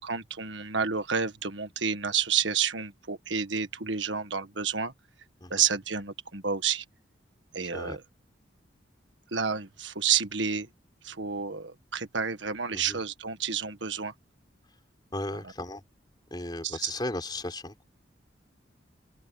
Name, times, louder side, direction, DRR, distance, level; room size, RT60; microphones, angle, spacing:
voice 1, 0.0-4.9 5.5-6.8 7.5-8.0 9.3-10.7 11.0-14.1 16.6-16.9, right 7 dB, 80° right, 1.6 m, -30 dB
voice 2, 15.1-15.8 16.3-17.8, left 1 dB, 25° left, 4.3 m, -36 dB
open air
head